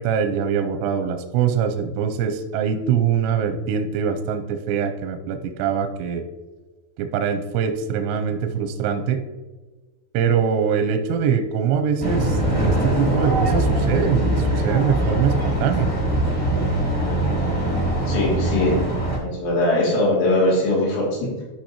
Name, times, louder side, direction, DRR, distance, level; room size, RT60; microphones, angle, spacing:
voice 1, 0.0-6.2 7.0-9.2 10.1-15.9, right 7 dB, 85° right, 6 dB, 2.6 m, -23 dB
sound 1, 12.0-19.2, right 1 dB, 5° left, 0.7 m, -22 dB
voice 2, 18.1-18.8 19.2-21.4, left 1 dB, 85° left, -6 dB, 5.3 m, -21 dB
13.0 x 5.2 x 2.9 m, 1.2 s
omnidirectional pair, 5.4 m